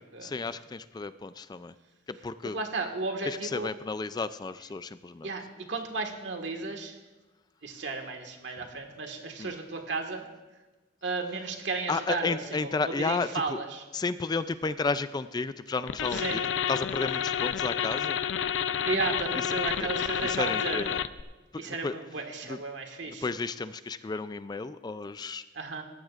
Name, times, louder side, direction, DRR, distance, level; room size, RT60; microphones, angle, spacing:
voice 1, 0.2-1.7 2.1-2.6 3.3-5.3 9.4-9.5 11.9-13.6 13.9-16.4 16.7-18.2 19.3-19.4 19.8-19.9 20.2-21.0 21.7-21.9 22.5-22.6 23.1-25.4, left 4 dB, 25° left, 14 dB, 0.3 m, -32 dB
voice 2, 2.5-3.7 5.2-7.0 7.6-10.3 11.0-13.8 16.1-16.5 18.9-20.9 21.6-23.3 25.5-25.8, right 3 dB, 80° right, 3 dB, 1.7 m, -34 dB
sound 1, 15.9-21.2, left 8 dB, 90° left, 0.5 m, -30 dB
18.5 x 14.0 x 2.5 m, 1.2 s
head